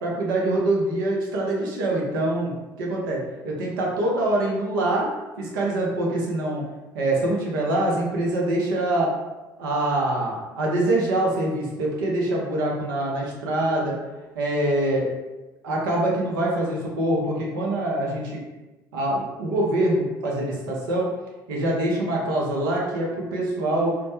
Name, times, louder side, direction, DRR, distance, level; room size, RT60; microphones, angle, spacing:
voice 1, 0.0-5.1 5.4-6.6 6.9-9.1 9.6-14.0 14.4-15.1 15.6-18.4 18.9-21.1 21.5-23.9, right 1 dB, 80° right, -3 dB, 0.6 m, -24 dB
2.1 x 2.1 x 2.9 m, 1.1 s
hypercardioid pair, 65°, 11 cm